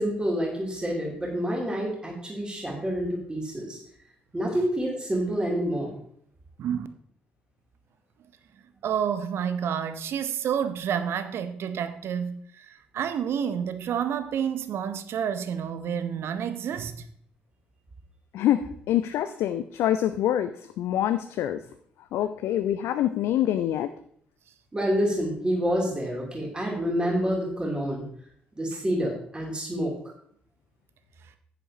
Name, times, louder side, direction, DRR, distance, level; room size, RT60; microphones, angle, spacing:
voice 1, 0.0-3.8 4.3-6.0 24.7-28.0 28.6-29.9, equal, 20° right, 3.1 m, -28 dB
voice 2, 8.8-17.1, right 8 dB, 55° right, 0.8 m, -29 dB
voice 3, 18.3-21.6 22.1-23.9, left 11 dB, 60° left, 0.4 m, -26 dB
11.0 x 9.1 x 2.9 m
figure-of-eight pair, 45°, 5 cm